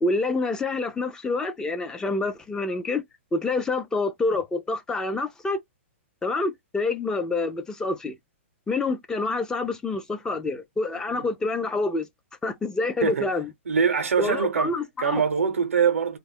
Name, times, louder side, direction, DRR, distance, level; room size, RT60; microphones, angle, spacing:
voice 1, 0.0-3.0 3.3-5.6 6.2-8.1 8.7-12.1 12.4-13.5 14.2-15.2, left 3 dB, 10° left, 0.4 m, -27 dB
voice 2, 13.7-16.2, right 6 dB, 90° right, 0.6 m, -24 dB
2.3 x 2.0 x 3.5 m
hypercardioid pair, 140°, 7 cm